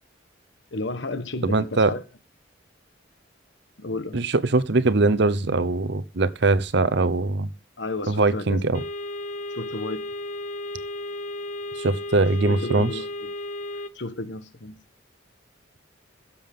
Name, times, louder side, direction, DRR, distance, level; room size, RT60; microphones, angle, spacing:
voice 1, 0.7-2.0 3.8-4.2 7.8-8.6 9.5-10.1 12.2-13.3 13.9-14.8, left 2 dB, 65° left, 1.3 m, -33 dB
voice 2, 1.4-1.9 4.1-7.5 8.1-8.8 11.8-12.9, right 3 dB, 60° right, 0.8 m, -22 dB
sound 1, 8.7-13.9, left 1 dB, 40° left, 0.7 m, -34 dB
16.0 x 7.2 x 3.7 m
head